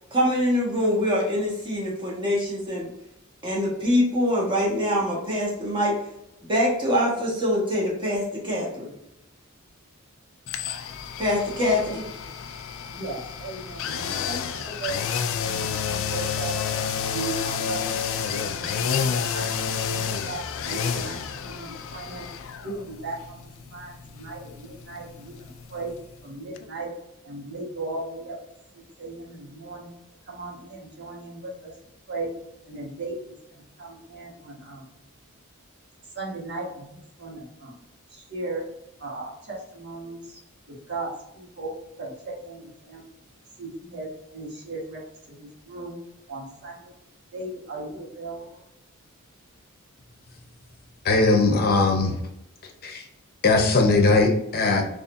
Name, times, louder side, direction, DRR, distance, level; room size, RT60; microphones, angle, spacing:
voice 1, 0.1-2.9 3.4-6.0 6.5-8.9 11.2-12.0, left 1 dB, 25° right, -4 dB, 1.4 m, -24 dB
sound 1, 10.5-26.3 26.6-26.7, left 7 dB, 65° left, 0.4 m, -30 dB
voice 2, 11.3-11.9 12.2-12.3 12.9-16.6 17.1-17.8 18.1-22.3 22.6-25.9 26.2-26.9 27.2-28.4 29.0-29.9 30.3-31.7 32.1-32.3 32.7-34.8 36.1-37.8 38.1-38.6 39.0-40.4 40.7-41.7 42.0-43.0 43.6-45.0 45.3-46.0 46.3-46.9 47.3-48.4, right 2 dB, 55° right, -3 dB, 1.3 m, -37 dB
voice 3, 51.0-52.2 52.6-53.1 53.4-54.8, left 3 dB, 45° left, 2 dB, 0.8 m, -20 dB
4.1 x 3.2 x 2.5 m, 0.84 s
head